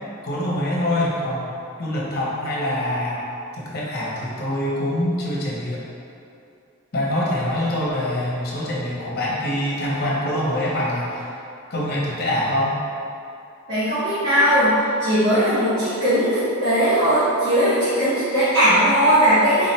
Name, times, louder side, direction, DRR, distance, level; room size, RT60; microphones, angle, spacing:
voice 1, 0.2-3.2 3.6-5.8 6.9-11.3 11.7-12.8, left 1 dB, 45° left, -5 dB, 1.0 m, -24 dB
voice 2, 13.7-14.7 15.0-19.7, equal, 55° right, -14 dB, 1.2 m, -18 dB
3.8 x 3.1 x 4.4 m, 2.6 s
head